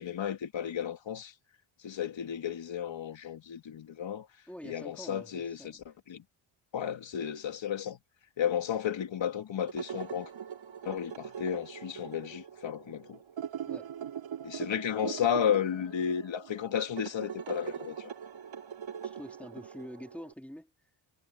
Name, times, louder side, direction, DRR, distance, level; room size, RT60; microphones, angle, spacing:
voice 1, 0.0-1.3 1.8-4.3 4.6-6.2 6.7-8.0 8.4-10.3 10.8-13.2 14.4-18.1, left 8 dB, 65° left, 2.6 m, -33 dB
voice 2, 4.5-5.8 13.7-13.9 19.0-20.7, equal, 5° left, 4.3 m, -46 dB
sound 1, 9.6-20.3, right 8 dB, 70° right, 3.3 m, -42 dB
wide cardioid pair, 125°, 48 cm